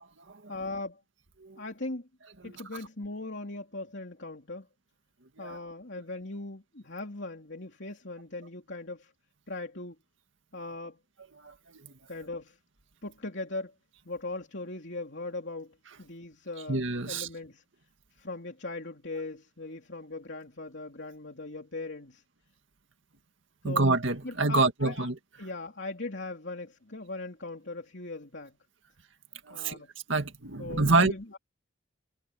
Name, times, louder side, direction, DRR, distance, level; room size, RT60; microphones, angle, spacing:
voice 1, 0.5-1.0 1.6-2.1 2.4-4.7 5.4-9.1 9.5-10.0 10.5-11.0 12.1-12.6 13.0-13.7 14.1-17.6 18.1-22.2 23.6-23.8 24.2-25.1 25.4-28.6 29.5-29.9 30.6-31.4, left 2 dB, 60° left, 3.6 m, -39 dB
voice 2, 11.4-11.9 16.7-17.3 23.6-25.1 29.5-29.8 30.1-31.1, right 3 dB, 75° right, 2.0 m, -27 dB
head